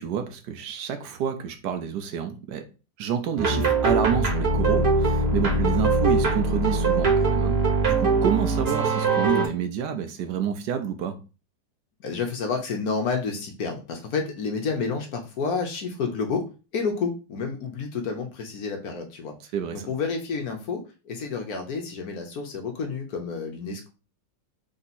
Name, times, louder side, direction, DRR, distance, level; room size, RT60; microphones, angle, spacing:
voice 1, 0.0-2.7 3.0-11.2 19.5-19.9, right 8 dB, 75° right, 1.1 m, -29 dB
sound 1, 3.4-9.5, right 3 dB, 40° right, 1.1 m, -22 dB
voice 2, 12.0-16.5 16.7-19.3 19.7-23.9, left 5 dB, 65° left, 1.1 m, -30 dB
3.6 x 2.8 x 4.0 m
omnidirectional pair, 1.9 m